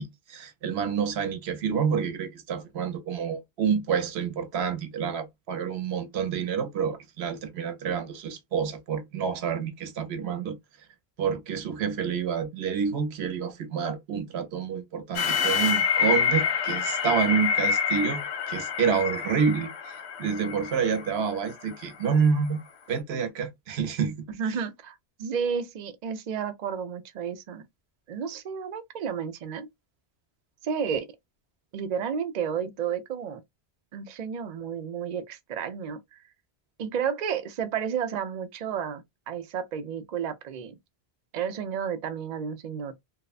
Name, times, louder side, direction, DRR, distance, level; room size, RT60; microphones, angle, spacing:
voice 1, 0.0-10.6 11.2-18.2 18.5-22.6 22.9-24.2, right 6 dB, 75° right, 0.9 m, -28 dB
sound 1, 15.1-22.1, left 6 dB, 85° left, 0.9 m, -27 dB
voice 2, 24.3-27.6 28.1-29.7 30.6-31.1 31.7-33.4 33.9-36.2 36.8-40.7 41.3-42.9, right 7 dB, 55° right, 0.5 m, -32 dB
2.7 x 2.1 x 2.3 m
omnidirectional pair, 1.1 m